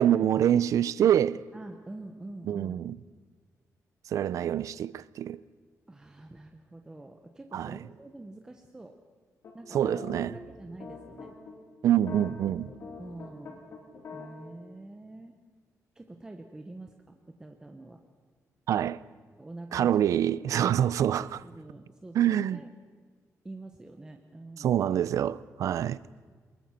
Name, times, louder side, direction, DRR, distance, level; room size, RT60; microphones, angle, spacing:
voice 1, 0.0-1.4 2.5-3.0 4.1-5.4 7.5-7.8 9.7-10.3 11.8-12.7 18.7-19.0 19.7-21.4 22.2-22.6 24.6-26.0, right 10 dB, 65° right, 0.5 m, -25 dB
voice 2, 1.5-2.7 5.9-9.0 9.5-10.1 10.4-11.3 13.0-13.6 14.1-15.4 15.9-18.0 19.4-19.9 21.4-22.7 23.4-24.8, right 2 dB, 10° right, 1.0 m, -46 dB
sound 1, 9.4-11.5 12.0-14.3, left 4 dB, 55° left, 5.0 m, -44 dB
23.5 x 21.5 x 5.8 m
wide cardioid pair, 165°, 6 cm